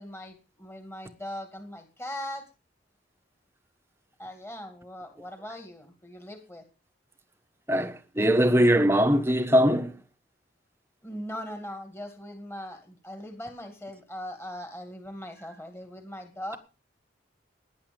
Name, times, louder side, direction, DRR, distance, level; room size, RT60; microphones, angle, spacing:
voice 1, 0.0-2.4 4.2-6.6 11.0-16.6, left 1 dB, 15° left, 2.1 m, -40 dB
voice 2, 7.7-9.9, equal, 10° right, 1.3 m, -21 dB
18.0 x 10.0 x 5.3 m
head